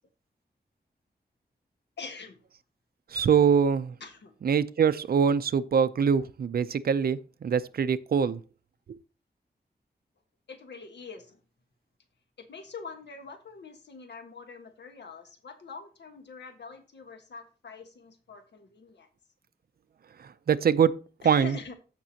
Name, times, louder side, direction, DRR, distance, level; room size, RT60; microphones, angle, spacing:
voice 1, 2.0-2.4 4.0-4.3 10.5-11.4 12.4-19.1 21.2-21.7, left 5 dB, 90° left, 1.4 m, -44 dB
voice 2, 3.1-3.9 4.4-8.4 20.5-20.9 21.2-21.6, right 7 dB, 60° right, 0.5 m, -23 dB
15.0 x 6.0 x 2.8 m
wide cardioid pair, 160°, 17 cm